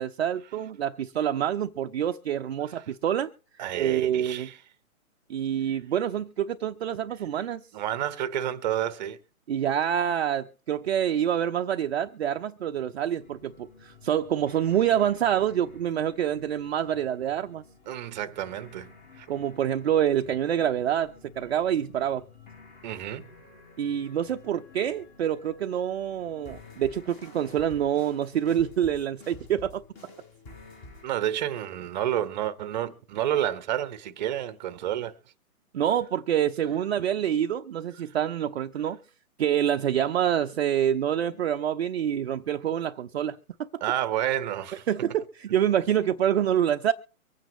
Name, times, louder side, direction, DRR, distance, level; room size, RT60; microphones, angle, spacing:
voice 1, 0.0-3.3 3.7-4.5 5.3-7.7 9.5-17.6 19.3-22.3 23.8-29.8 35.7-39.0 39.4-43.7 44.9-46.9, right 10 dB, 50° right, 0.8 m, -26 dB
voice 2, 3.6-4.6 7.7-9.2 17.9-18.9 19.2-19.3 22.8-23.3 31.0-35.1 43.8-44.8, right 11 dB, 30° right, 1.1 m, -30 dB
sound 1, 13.2-31.1, left 3 dB, 20° left, 3.9 m, -51 dB
24.5 x 9.1 x 3.1 m
hypercardioid pair, 145°, 42 cm